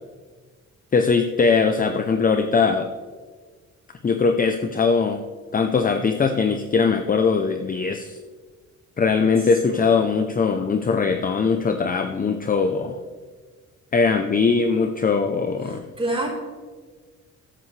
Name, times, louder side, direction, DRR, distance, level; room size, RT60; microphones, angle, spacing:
voice 1, 0.9-2.9 4.0-5.2 5.5-8.2 9.0-13.0 13.9-15.8, left 5 dB, 30° left, 7 dB, 0.7 m, -21 dB
voice 2, 9.4-9.9 15.6-16.3, right 2 dB, 20° right, -4 dB, 4.0 m, -29 dB
13.5 x 11.0 x 3.3 m, 1.5 s
cardioid pair, 90°, 30 cm